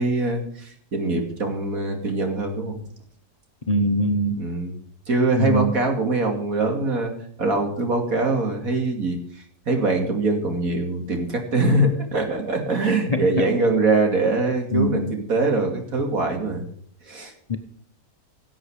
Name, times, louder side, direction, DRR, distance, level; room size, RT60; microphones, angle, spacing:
voice 1, 0.0-2.8 4.4-4.7 5.1-7.1 7.4-16.7 17.1-17.3, right 2 dB, 65° right, 3 dB, 2.9 m, -23 dB
voice 2, 3.7-4.4 5.3-5.7 13.1-13.4 14.7-15.1 17.5-17.6, equal, 30° left, 6 dB, 0.9 m, -22 dB
17.0 x 8.2 x 5.0 m, 0.63 s
omnidirectional pair, 1.6 m